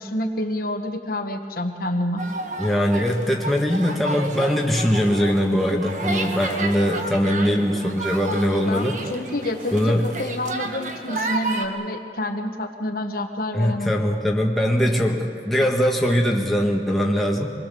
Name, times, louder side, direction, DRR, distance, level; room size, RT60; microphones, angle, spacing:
voice 1, 0.0-2.2 8.7-14.0, left 1 dB, 55° left, 4 dB, 1.4 m, -28 dB
sound 1, 2.2-11.7, right 2 dB, 45° right, 1.5 m, -31 dB
voice 2, 2.6-8.9 9.7-10.1 13.5-17.5, equal, ahead, -2 dB, 1.6 m, -21 dB
25.0 x 21.0 x 7.0 m, 2.2 s
head